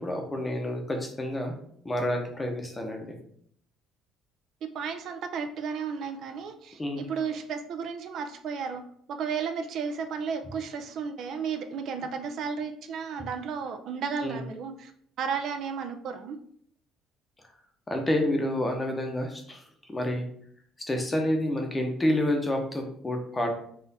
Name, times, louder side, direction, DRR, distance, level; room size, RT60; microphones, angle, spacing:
voice 1, 0.0-1.5 1.8-3.2 6.8-7.1 14.2-14.4 17.9-19.6 19.9-20.2 20.8-23.5, left 1 dB, 15° left, 3 dB, 0.7 m, -29 dB
voice 2, 4.7-8.8 9.1-14.9 15.2-16.4, right 6 dB, 55° right, 6 dB, 0.4 m, -33 dB
4.2 x 2.5 x 4.0 m, 0.64 s
cardioid pair, 145°, 0 cm